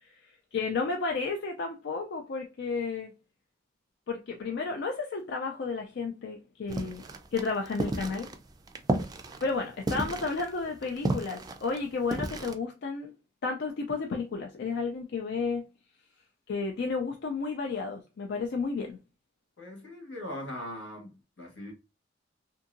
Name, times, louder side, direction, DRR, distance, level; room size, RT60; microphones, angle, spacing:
voice 1, 0.0-3.1 4.1-7.0 7.3-8.3 9.4-13.1 13.4-15.6 16.5-19.0, left 4 dB, 60° left, 0.4 m, -32 dB
sound 1, 6.7-12.5, right 2 dB, 20° right, 0.3 m, -33 dB
voice 2, 19.6-21.1 21.4-21.7, left 1 dB, 85° left, 1.4 m, -40 dB
2.7 x 2.6 x 2.5 m
head